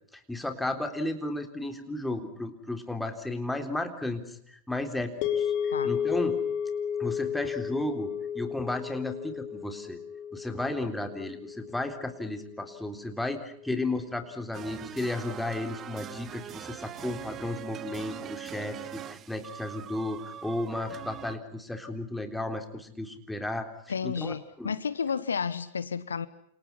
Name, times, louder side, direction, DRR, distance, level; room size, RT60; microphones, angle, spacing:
voice 1, 0.1-6.4 7.0-10.0 10.3-23.7 24.0-24.7, left 2 dB, 5° left, 3.7 m, -34 dB
sound 1, 5.2-13.5, left 8 dB, 45° left, 4.0 m, -33 dB
sound 2, 14.5-21.4, right 10 dB, 30° right, 1.1 m, -42 dB
voice 2, 23.9-26.3, left 6 dB, 70° left, 1.2 m, -31 dB
29.5 x 28.5 x 5.8 m
figure-of-eight pair, 90°, 0 cm